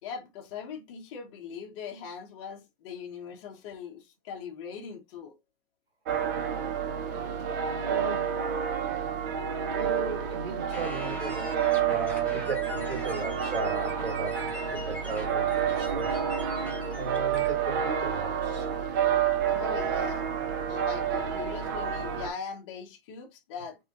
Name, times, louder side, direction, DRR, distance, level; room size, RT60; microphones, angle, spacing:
voice 1, 0.0-5.3 19.5-20.3 20.7-23.8, left 6 dB, 30° left, 1.0 m, -40 dB
sound 1, 6.1-22.3, right 8 dB, 20° right, 0.4 m, -29 dB
voice 2, 7.8-8.3 9.6-16.2 17.0-18.7, right 3 dB, 85° right, 2.1 m, -36 dB
sound 2, 10.7-17.5, left 1 dB, 5° left, 1.1 m, -42 dB
3.8 x 3.6 x 2.9 m
hypercardioid pair, 155°, 29 cm